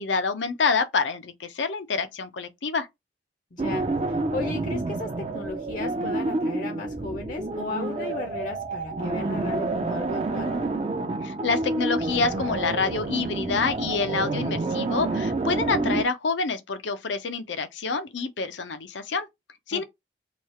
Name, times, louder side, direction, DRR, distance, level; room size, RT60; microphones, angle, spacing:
voice 1, 0.0-2.9 11.2-19.3 19.7-19.8, left 4 dB, 90° left, 0.6 m, -27 dB
voice 2, 3.5-10.5 19.7-19.8, left 3 dB, 45° left, 0.5 m, -35 dB
sound 1, 3.6-16.1, right 2 dB, 35° right, 0.4 m, -28 dB
3.1 x 2.3 x 4.2 m
head